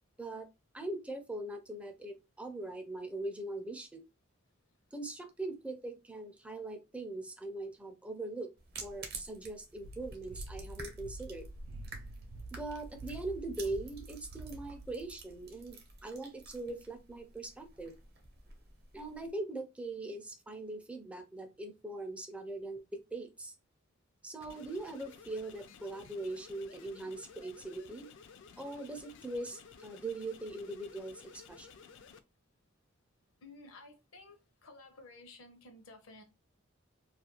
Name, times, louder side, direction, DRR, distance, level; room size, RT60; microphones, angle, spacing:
voice 1, 0.7-4.0 4.9-8.5 8.8-11.5 12.5-17.9 18.9-23.5 24.2-28.1 28.6-31.7, right 2 dB, 5° right, 0.4 m, -41 dB
sound 1, 8.6-19.3, right 3 dB, 55° right, 0.7 m, -51 dB
sound 2, 9.8-15.9, right 2 dB, 80° right, 0.3 m, -48 dB
sound 3, 24.4-32.2, left 6 dB, 65° left, 0.4 m, -55 dB
voice 2, 33.4-36.2, left 2 dB, 85° left, 0.7 m, -54 dB
2.4 x 2.2 x 2.8 m
head